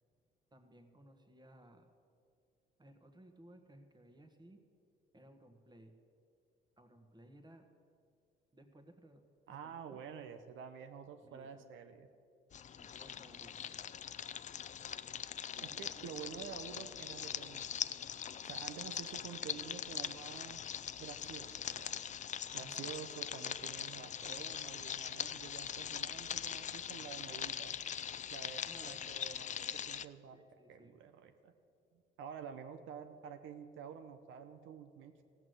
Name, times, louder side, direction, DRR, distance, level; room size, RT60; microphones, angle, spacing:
voice 1, 0.5-1.9 2.8-4.6 5.1-5.9 6.8-7.7 8.5-10.0 11.2-11.8 12.7-13.6 15.5-16.0 22.6-22.9 26.3-26.5 28.6-29.2 30.3-31.0, right 1 dB, 20° right, 6 dB, 1.4 m, -60 dB
voice 2, 9.5-12.1 15.6-17.8 18.4-20.6 21.0-21.9 22.5-27.7 28.3-30.4 30.7-31.5 31.9-35.2, right 7 dB, 85° right, 8 dB, 0.8 m, -49 dB
sound 1, 12.5-30.0, left 9 dB, 40° left, 0.4 m, -42 dB
15.5 x 6.0 x 8.0 m, 2.4 s
cardioid pair, 90°, 20 cm